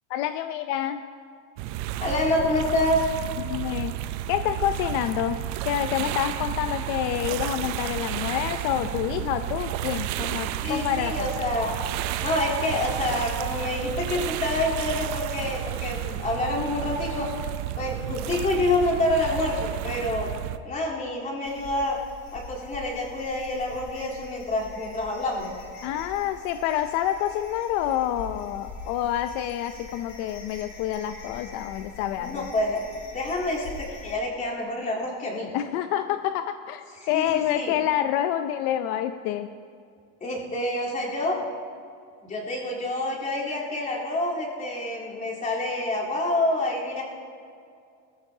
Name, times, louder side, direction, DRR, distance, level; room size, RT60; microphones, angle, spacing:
voice 1, 0.1-1.0 3.4-3.9 4.3-5.4 5.6-11.1 25.8-32.5 35.5-39.5, left 11 dB, 70° left, 9 dB, 0.6 m, -27 dB
sound 1, 1.6-20.6, right 13 dB, 65° right, 0.7 m, -32 dB
voice 2, 2.0-3.0 10.6-11.8 12.2-17.3 17.8-20.3 20.6-22.0 22.3-25.5 32.2-32.9 33.1-35.5 37.0-37.7 40.2-41.4 42.2-47.0, left 2 dB, 25° left, -5 dB, 3.6 m, -27 dB
sound 2, 21.4-34.1, left 3 dB, 85° left, 3.9 m, -44 dB
19.5 x 14.5 x 2.8 m, 2.3 s
cardioid pair, 130°, 30 cm